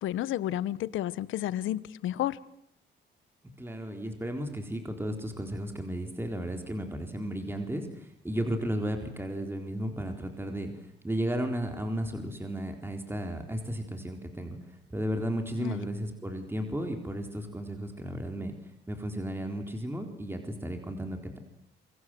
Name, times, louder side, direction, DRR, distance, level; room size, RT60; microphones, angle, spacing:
voice 1, 0.0-2.4 15.6-15.8, left 13 dB, 80° left, 1.1 m, -31 dB
voice 2, 3.6-21.4, right 1 dB, 10° right, 4.1 m, -34 dB
28.0 x 24.0 x 7.8 m
cardioid pair, 90°, 20 cm